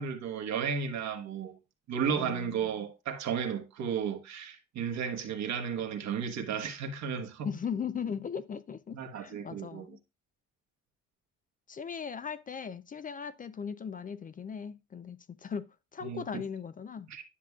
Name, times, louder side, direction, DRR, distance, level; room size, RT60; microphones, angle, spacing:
voice 1, 0.0-1.6 1.9-7.5 8.9-10.0 16.0-16.4 17.1-17.2, right 7 dB, 70° right, 1.2 m, -34 dB
voice 2, 2.2-2.5 7.4-10.0 11.7-15.6 15.9-17.1, left 7 dB, 30° left, 0.4 m, -38 dB
10.0 x 5.9 x 2.2 m
cardioid pair, 110°, 29 cm